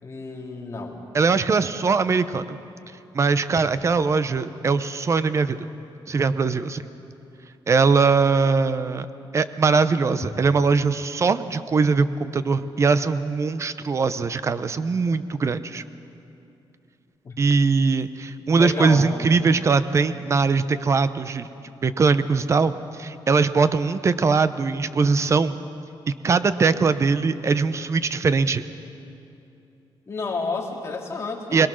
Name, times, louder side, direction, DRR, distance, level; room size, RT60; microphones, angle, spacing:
voice 1, 0.0-1.1 17.2-17.4 18.6-19.3 30.1-31.7, left 4 dB, 30° left, -1 dB, 2.4 m, -31 dB
voice 2, 1.1-2.6 3.1-5.6 6.1-6.8 7.7-9.1 9.3-15.8 17.4-21.5 21.8-25.6 26.2-28.6 31.5-31.7, right 4 dB, 35° right, 13 dB, 0.7 m, -21 dB
22.0 x 21.0 x 6.3 m, 2.8 s
wide cardioid pair, 155°, 9 cm